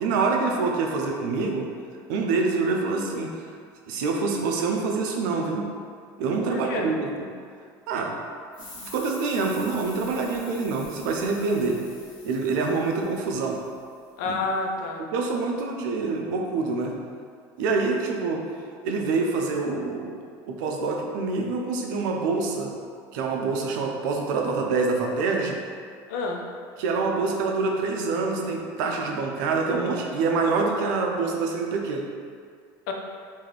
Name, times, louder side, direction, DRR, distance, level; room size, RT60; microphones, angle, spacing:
voice 1, 0.0-1.7 2.1-3.4 3.9-5.7 6.2-7.1 7.9-8.1 8.8-11.8 12.2-13.6 14.3-14.4 15.1-16.9 17.6-18.4 18.8-20.1 20.5-22.7 23.1-25.6 26.8-32.0, right 4 dB, 85° right, 1 dB, 0.4 m, -26 dB
voice 2, 6.5-6.9 14.2-15.0 26.1-26.4 32.9-33.0, left 3 dB, 85° left, 1 dB, 0.4 m, -29 dB
sound 1, 8.5-13.8, left 3 dB, 60° left, 0.8 m, -46 dB
2.6 x 2.3 x 3.2 m, 2.1 s
supercardioid pair, 105°, 10 cm